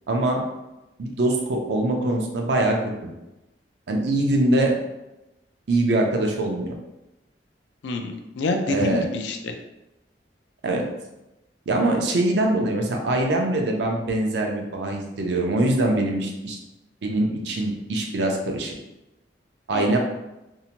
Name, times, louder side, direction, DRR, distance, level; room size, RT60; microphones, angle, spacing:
voice 1, 0.1-0.4 1.0-3.1 3.9-4.7 5.7-6.7 8.7-9.0 10.6-10.8 11.7-16.6 17.0-18.7 19.7-20.0, right 1 dB, 70° right, 1 dB, 0.5 m, -23 dB
voice 2, 7.8-9.5 19.7-20.0, left 2 dB, 80° left, 4 dB, 0.4 m, -27 dB
2.7 x 2.1 x 2.8 m, 0.95 s
head